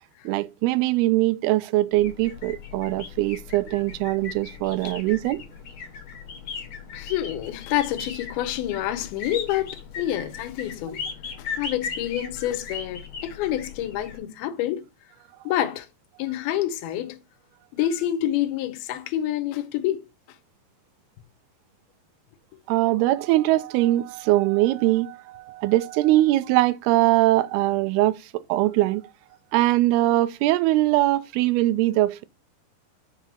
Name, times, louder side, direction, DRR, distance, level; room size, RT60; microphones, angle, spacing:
voice 1, 0.3-5.4 22.7-29.0 29.5-32.2, right 16 dB, 85° right, 2.5 m, -22 dB
sound 1, 1.9-14.2, left 5 dB, 50° left, 1.7 m, -38 dB
voice 2, 6.9-11.0 11.4-14.9 15.5-15.9 16.2-17.2 17.7-20.1, left 12 dB, 80° left, 2.6 m, -27 dB
6.0 x 5.6 x 5.7 m
omnidirectional pair, 4.6 m